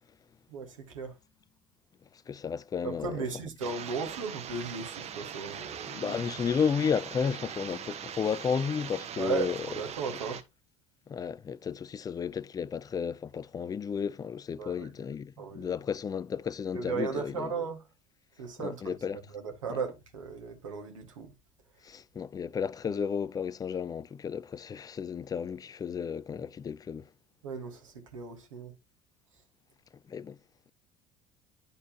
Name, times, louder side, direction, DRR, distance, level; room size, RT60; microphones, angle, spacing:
voice 1, 0.5-1.2 2.8-6.3 9.2-10.4 14.6-14.9 15.4-15.8 16.7-17.8 18.4-19.0 19.3-21.3 27.4-28.7, right 5 dB, 80° right, 1.7 m, -36 dB
voice 2, 2.3-3.2 5.9-9.6 11.1-17.5 18.6-19.2 19.7-19.8 21.8-27.1 30.1-30.4, left 6 dB, 25° left, 0.4 m, -33 dB
sound 1, 3.6-10.4, right 8 dB, 40° right, 0.9 m, -41 dB
10.5 x 4.3 x 2.8 m
hypercardioid pair, 65°, 16 cm